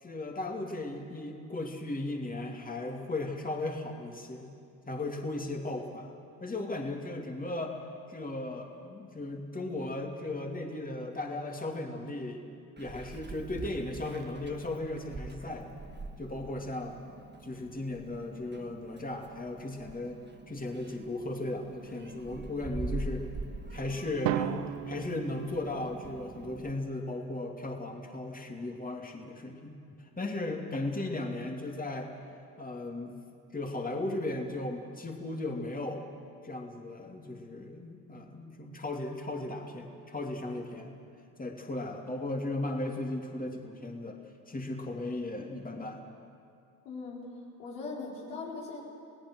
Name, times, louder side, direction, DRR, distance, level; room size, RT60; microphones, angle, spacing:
voice 1, 0.0-4.5 4.9-6.1 6.4-7.8 8.1-12.4 12.8-15.8 16.2-17.0 17.4-20.2 20.5-23.3 23.7-29.8 30.2-32.1 32.6-33.2 33.5-36.0 36.4-41.0 41.4-44.2 44.5-46.0, left 2 dB, 15° left, 2 dB, 2.9 m, -36 dB
Meow, 12.8-26.7, right 3 dB, 20° right, 1.7 m, -44 dB
Drum, 24.2-26.3, right 14 dB, 85° right, 0.7 m, -35 dB
voice 2, 46.8-47.2 47.6-48.8, left 4 dB, 85° left, -4 dB, 4.5 m, -39 dB
28.5 x 17.5 x 6.4 m, 2.4 s
hypercardioid pair, 55°, 47 cm